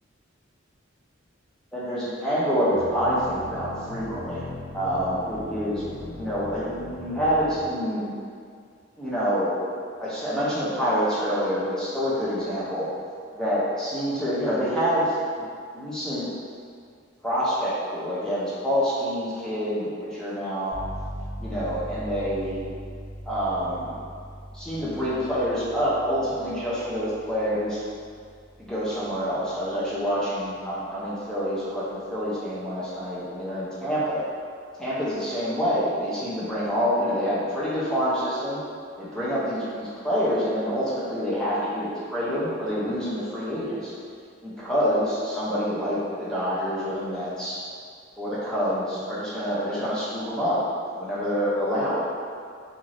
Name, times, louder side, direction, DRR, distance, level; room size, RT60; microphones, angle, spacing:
voice 1, 1.7-4.5 4.7-5.8 6.1-8.1 9.0-9.6 10.0-12.9 13.3-15.5 15.7-16.3 17.2-20.8 21.4-22.7 23.3-24.0 24.5-27.8 28.6-34.2 34.8-38.6 39.0-44.0 44.4-47.6 48.2-50.6 51.0-52.1, equal, 5° left, -10 dB, 0.5 m, -27 dB
sound 1, 2.7-7.7, left 2 dB, 90° left, 0.4 m, -39 dB
sound 2, 20.7-31.2, equal, 50° left, 1.3 m, -41 dB
2.6 x 2.4 x 3.1 m, 2.2 s
head